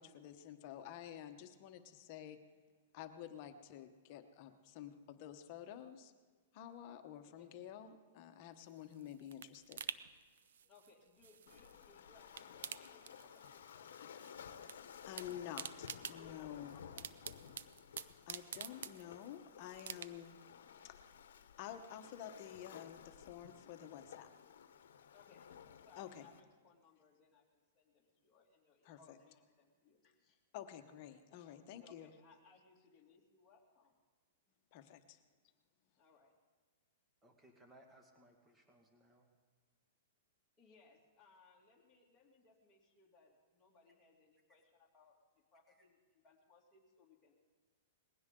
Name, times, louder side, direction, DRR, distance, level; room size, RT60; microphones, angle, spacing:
voice 1, 0.0-2.4 2.9-6.1 6.5-9.8 15.1-16.7 18.3-20.4 20.8-21.1 21.6-24.3 25.9-26.3 28.8-29.2 30.5-32.1 34.7-35.2, left 10 dB, 45° left, 7 dB, 1.1 m, -50 dB
voice 2, 7.2-7.5 10.7-13.9 16.1-17.1 25.1-25.6 25.8-30.4 31.8-34.0 36.0-36.4 40.6-45.2 45.5-47.3, left 4 dB, 15° left, -4 dB, 2.7 m, -67 dB
sound 1, 8.6-11.9 12.2-13.7 13.9-14.8 15.0-19.4 19.8-20.4 20.8-20.9, right 8 dB, 80° right, 0.6 m, -48 dB
Waves surf, 11.5-26.4, left 8 dB, 80° left, 0.9 m, -56 dB
voice 3, 37.2-39.3 45.7-45.8, right 1 dB, 10° right, 2 dB, 1.9 m, -65 dB
20.5 x 16.5 x 3.8 m, 1.4 s
hypercardioid pair, 145°, 0 cm